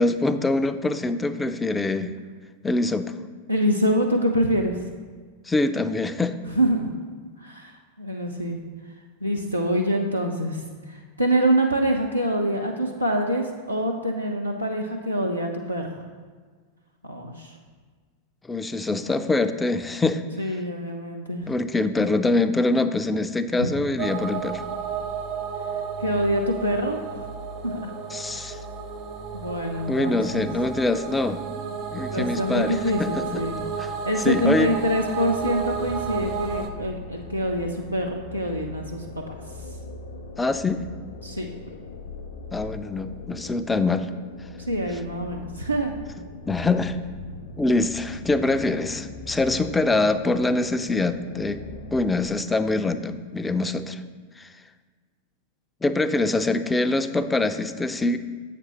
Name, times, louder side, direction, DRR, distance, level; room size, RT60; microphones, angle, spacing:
voice 1, 0.0-2.1 2.6-3.1 5.5-6.3 18.5-20.2 21.5-24.6 28.1-28.6 29.9-31.4 31.9-33.4 33.8-33.9 34.2-34.7 40.4-40.8 42.5-44.1 46.4-47.0 47.6-51.6 51.9-54.0 54.4-54.5 55.8-58.2, left 2 dB, 10° left, 10 dB, 0.3 m, -24 dB
voice 2, 3.5-4.8 6.5-6.9 7.4-8.6 9.2-16.0 17.0-17.6 20.4-21.5 23.6-23.7 26.0-27.0 27.6-27.9 28.3-28.5 29.3-30.5 32.1-33.7 34.1-39.3 41.2-41.5 44.6-45.9, equal, 90° right, 0 dB, 0.4 m, -25 dB
sound 1, 24.0-36.7, right 6 dB, 40° right, 0.6 m, -32 dB
sound 2, 35.3-52.7, left 3 dB, 75° left, 0.6 m, -40 dB
7.8 x 5.9 x 2.9 m, 1.5 s
figure-of-eight pair, 90°, 0 cm